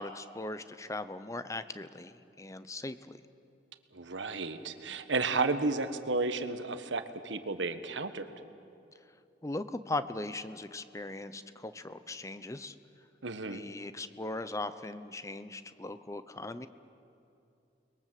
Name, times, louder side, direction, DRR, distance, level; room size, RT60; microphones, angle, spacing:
voice 1, 0.0-3.2 9.4-12.7 13.5-16.7, left 2 dB, 15° left, 12 dB, 0.7 m, -39 dB
voice 2, 3.9-8.3 13.2-13.6, right 3 dB, 80° right, 9 dB, 1.4 m, -32 dB
29.5 x 21.5 x 7.6 m, 2.7 s
head